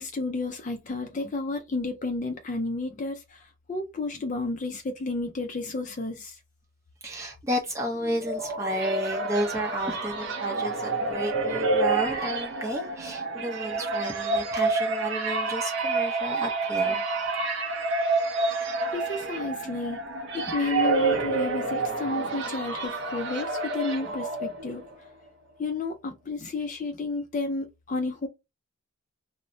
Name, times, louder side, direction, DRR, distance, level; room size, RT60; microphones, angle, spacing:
voice 1, 0.0-3.4 3.7-6.4 18.5-18.6 18.9-20.0 20.3-24.8 25.6-28.3, left 3 dB, 35° left, 0.3 m, -31 dB
voice 2, 7.0-17.0, right 1 dB, 15° right, 0.6 m, -32 dB
sound 1, 7.9-24.9, right 3 dB, 60° right, 0.5 m, -28 dB
2.9 x 2.0 x 2.6 m
head